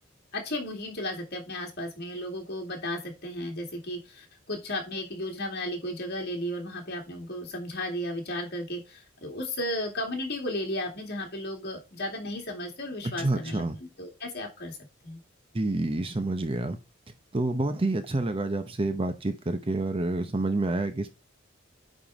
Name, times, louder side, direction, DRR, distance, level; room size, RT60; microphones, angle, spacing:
voice 1, 0.3-13.7 14.0-14.8 15.0-15.2, left 1 dB, 55° left, 2.6 m, -34 dB
voice 2, 13.0-13.8 15.5-16.8 17.3-21.1, right 2 dB, 30° right, 0.7 m, -28 dB
9.0 x 3.8 x 4.7 m
head